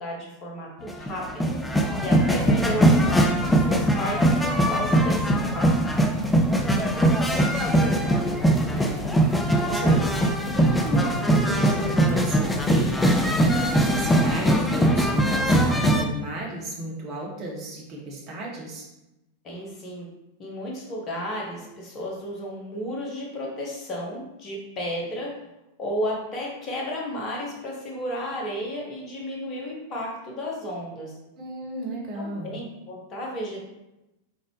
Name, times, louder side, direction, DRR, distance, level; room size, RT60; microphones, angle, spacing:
voice 1, 0.0-1.6 2.0-6.1 19.4-20.1 20.4-25.4 25.8-31.2 32.1-33.7, equal, 30° left, -2 dB, 1.2 m, -33 dB
sound 1, 0.9-16.0, right 1 dB, 5° left, 0.4 m, -21 dB
voice 2, 6.9-8.4 8.7-10.1 10.5-18.9 31.3-32.5, right 1 dB, 35° right, -2 dB, 1.3 m, -35 dB
3.9 x 3.9 x 3.2 m, 0.94 s
figure-of-eight pair, 90°, 0 cm